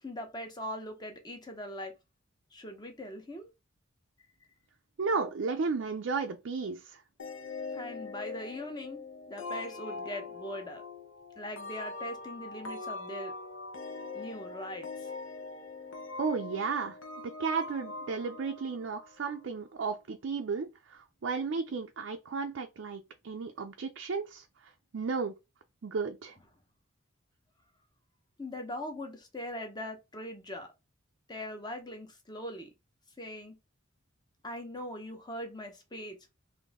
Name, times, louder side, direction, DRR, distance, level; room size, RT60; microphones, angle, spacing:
voice 1, 0.0-1.9 2.5-3.5 7.7-9.0 9.3-10.8 11.4-13.3 14.1-15.1 28.4-30.7 31.3-32.7 33.2-33.6 34.4-36.2, left 1 dB, 20° left, 0.8 m, -41 dB
voice 2, 5.0-7.0 16.2-17.0 17.2-25.3 25.8-26.4, right 4 dB, 60° right, 0.4 m, -34 dB
sound 1, 7.2-19.6, left 3 dB, 75° left, 0.8 m, -42 dB
4.0 x 2.6 x 3.5 m
head